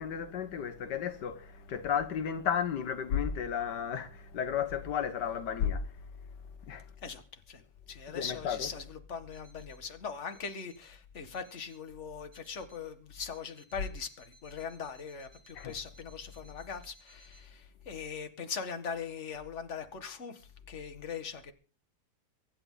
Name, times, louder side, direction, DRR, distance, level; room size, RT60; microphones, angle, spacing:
voice 1, 0.0-6.1 6.6-6.9 8.1-8.7 15.5-15.8, left 8 dB, 80° left, 1.7 m, -33 dB
voice 2, 7.0-21.5, left 6 dB, 45° left, 1.9 m, -41 dB
Alarm, 9.3-9.9 10.3-10.9 11.3-11.9 12.3-12.9 13.3-17.5, right 3 dB, 90° right, 3.8 m, -63 dB
23.5 x 11.0 x 3.9 m
omnidirectional pair, 1.8 m